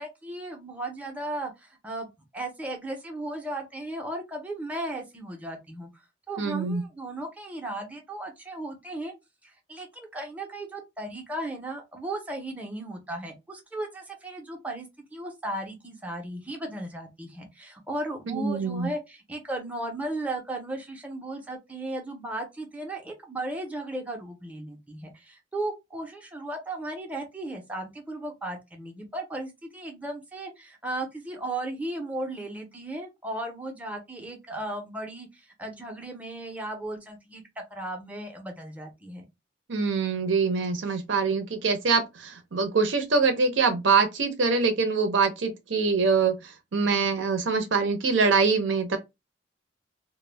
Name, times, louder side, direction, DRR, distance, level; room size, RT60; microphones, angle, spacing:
voice 1, 0.0-5.9 6.3-9.1 9.4-39.2, right 1 dB, 10° right, 0.6 m, -36 dB
voice 2, 6.4-6.8 18.3-18.9 39.7-46.4 46.7-49.0, right 4 dB, 75° right, 0.6 m, -24 dB
2.1 x 2.1 x 3.2 m
head